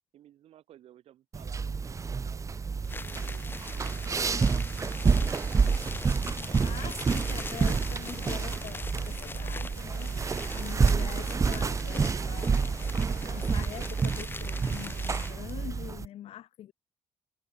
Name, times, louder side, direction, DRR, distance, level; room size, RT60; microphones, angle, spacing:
voice 1, 0.1-5.8, right 12 dB, 75° right, 3.9 m, -56 dB
sound 1, 1.3-16.1, right 5 dB, 30° right, 0.8 m, -29 dB
sound 2, 2.8-15.5, left 3 dB, 20° left, 0.9 m, -42 dB
sound 3, 6.2-13.5, left 16 dB, 85° left, 2.5 m, -53 dB
voice 2, 6.6-12.8 13.3-16.7, left 12 dB, 70° left, 2.0 m, -44 dB
cardioid pair, 85°, 10 cm